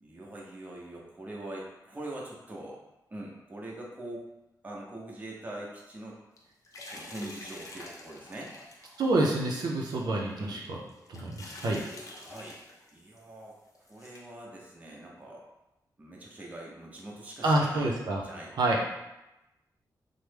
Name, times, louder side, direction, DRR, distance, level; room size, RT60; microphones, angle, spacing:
voice 1, 0.0-2.8 3.1-4.2 4.6-6.2 6.9-8.5 10.4-10.6 12.1-12.6 12.9-15.4 16.0-17.9 18.2-18.5, right 1 dB, 20° right, -3 dB, 0.6 m, -43 dB
sound 1, 6.4-9.5 9.9-10.0 10.6-12.9 13.2-13.3 13.7-14.2, left 2 dB, 50° left, 0.5 m, -47 dB
voice 2, 9.0-10.8 11.1-11.8 17.4-18.2 18.6-18.8, right 2 dB, 70° right, -2 dB, 0.5 m, -27 dB
3.2 x 2.0 x 3.3 m, 0.95 s
wide cardioid pair, 125°, 7 cm